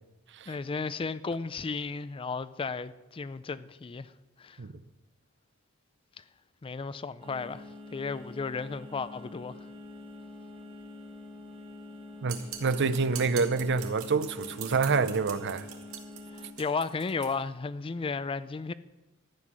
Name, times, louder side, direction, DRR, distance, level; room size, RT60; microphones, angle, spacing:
voice 1, 0.5-4.1 4.4-4.6 6.2-6.3 6.6-9.6 16.3-18.7, left 4 dB, 25° left, 0.4 m, -34 dB
sound 1, 7.2-16.5, left 2 dB, 25° right, 1.8 m, -46 dB
voice 2, 12.2-15.7, right 4 dB, 55° right, 0.6 m, -27 dB
sound 2, 12.3-17.3, right 9 dB, 75° right, 2.1 m, -43 dB
13.5 x 9.8 x 6.2 m
head